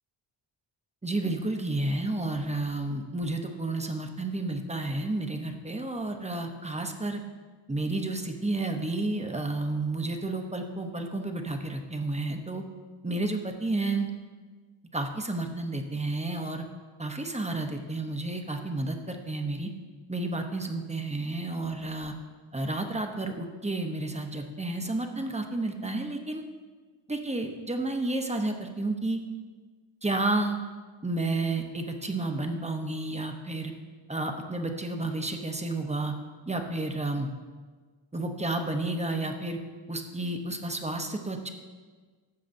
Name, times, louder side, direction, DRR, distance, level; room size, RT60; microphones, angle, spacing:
voice 1, 1.0-7.2 7.7-12.6 13.0-14.1 14.9-16.6 17.0-19.7 20.1-22.1 22.5-26.4 27.1-29.2 30.0-30.6 31.0-33.7 34.1-36.1 36.5-37.3 38.1-39.6 39.9-41.5, right 2 dB, 15° right, 4 dB, 0.6 m, -31 dB
15.0 x 7.5 x 2.6 m, 1.4 s
wide cardioid pair, 175°, 50 cm